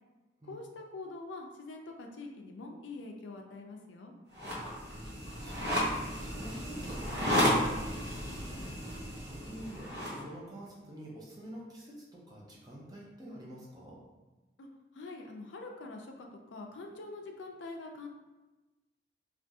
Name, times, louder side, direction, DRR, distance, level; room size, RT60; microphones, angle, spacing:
voice 1, 0.4-4.1 14.6-18.1, left 3 dB, 85° left, 2 dB, 0.4 m, -45 dB
sound 1, 4.3-10.2, equal, 65° right, 0.8 m, -33 dB
voice 2, 4.7-14.0, right 1 dB, 20° right, -4 dB, 0.6 m, -48 dB
3.4 x 2.4 x 2.7 m, 1.1 s
head